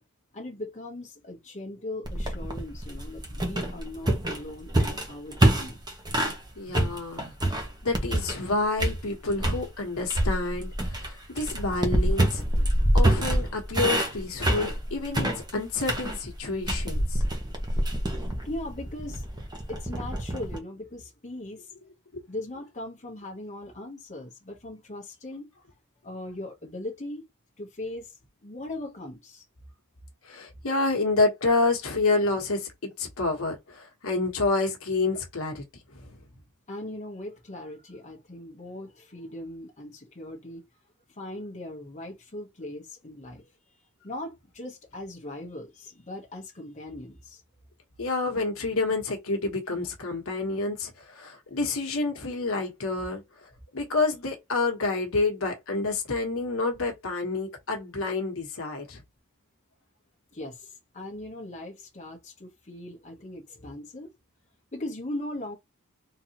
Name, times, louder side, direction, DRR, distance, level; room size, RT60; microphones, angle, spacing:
voice 1, 0.3-5.8 18.4-19.2 19.7-21.7 22.3-25.5 26.0-27.3 27.6-29.4 36.7-40.6 41.1-43.5 44.0-47.4 60.3-64.1 64.7-65.6, left 1 dB, 30° left, 1.0 m, -39 dB
sound 1, 2.0-6.4 6.7-8.5 8.8-9.6 10.1-20.6, right 1 dB, 20° right, 0.9 m, -26 dB
voice 2, 6.6-12.4 12.9-17.2 22.1-22.3 30.2-35.6 35.9-36.2 48.0-59.0, left 3 dB, 65° left, 1.1 m, -29 dB
3.8 x 2.8 x 2.9 m
head